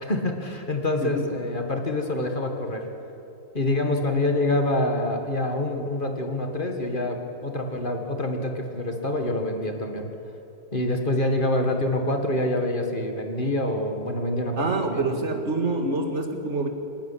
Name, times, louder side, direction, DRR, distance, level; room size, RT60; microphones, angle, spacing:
voice 1, 0.0-2.8 3.5-10.1 10.7-15.1, left 1 dB, 30° left, 4 dB, 1.9 m, -26 dB
voice 2, 14.6-16.7, right 2 dB, 40° right, 5 dB, 2.1 m, -26 dB
26.0 x 11.0 x 9.9 m, 2.9 s
omnidirectional pair, 2.0 m